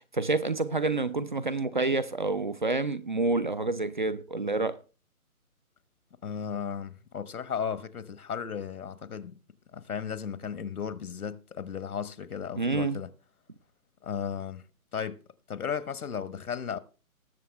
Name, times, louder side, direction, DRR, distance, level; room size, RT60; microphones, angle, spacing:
voice 1, 0.0-4.8 12.6-13.0, right 3 dB, 35° right, 0.5 m, -28 dB
voice 2, 6.2-9.4 9.7-13.1 14.0-14.7 14.9-15.2 15.5-16.8, left 7 dB, 75° left, 1.3 m, -35 dB
20.0 x 7.1 x 3.3 m
hypercardioid pair, 155°, 44 cm